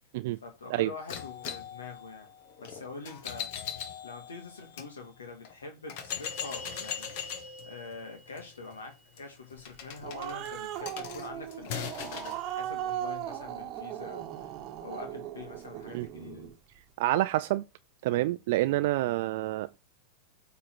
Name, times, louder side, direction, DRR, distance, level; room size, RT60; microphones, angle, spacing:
voice 1, 0.4-2.3 2.6-3.5 4.0-7.1 7.6-14.5 14.8-16.5, left 3 dB, 80° left, 1.8 m, -45 dB
sound 1, 1.1-4.9 5.4-5.5 5.9-12.4, left 8 dB, 55° left, 1.3 m, -40 dB
Growling, 9.7-16.5, right 11 dB, 40° right, 1.1 m, -38 dB
voice 2, 17.0-17.6 18.0-19.8, right 16 dB, 60° right, 0.4 m, -28 dB
8.5 x 3.8 x 4.5 m
hypercardioid pair, 95°, 0 cm